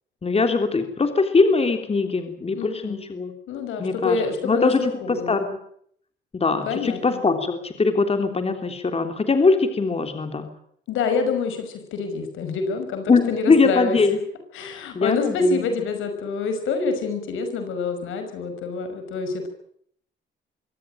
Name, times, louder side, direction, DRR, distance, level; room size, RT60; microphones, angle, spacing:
voice 1, 0.2-3.3 3.8-5.5 6.3-10.5 13.1-14.2 14.9-15.6, left 4 dB, 30° left, 7 dB, 3.3 m, -21 dB
voice 2, 2.5-3.0 3.5-5.4 6.7-7.2 10.9-14.0 14.5-19.5, left 4 dB, 85° left, 7 dB, 5.7 m, -27 dB
24.0 x 17.0 x 9.0 m, 0.66 s
cardioid pair, 90°, 20 cm